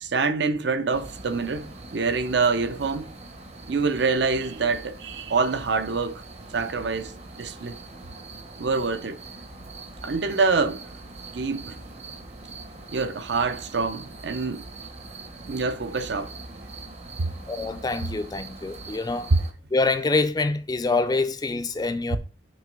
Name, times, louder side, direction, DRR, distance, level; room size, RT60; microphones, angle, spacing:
voice 1, 0.0-3.1 3.7-6.2 6.5-7.8 8.6-9.2 10.0-10.8 11.3-11.8 12.9-14.6 15.5-16.3 17.2-17.3 19.3-19.4 22.1-22.2, right 4 dB, 65° right, 0.6 m, -25 dB
sound 1, 0.9-19.5, right 2 dB, 35° right, 0.8 m, -42 dB
voice 2, 17.5-19.3 19.7-22.2, left 3 dB, 20° left, 0.3 m, -25 dB
6.3 x 3.0 x 5.1 m
head